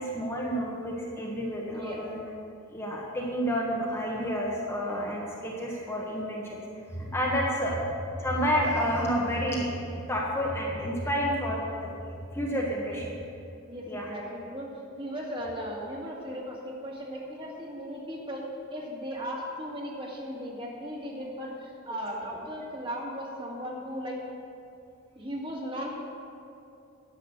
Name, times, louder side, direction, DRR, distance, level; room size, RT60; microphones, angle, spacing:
voice 1, 0.0-2.2 2.7-6.6 6.9-7.9 8.2-13.1 13.9-14.1, equal, 10° left, -4 dB, 1.3 m, -30 dB
voice 2, 13.7-14.7 15.0-18.4 18.7-24.2 25.2-25.9, equal, 25° right, -3 dB, 2.3 m, -37 dB
10.5 x 7.5 x 8.2 m, 2.6 s
head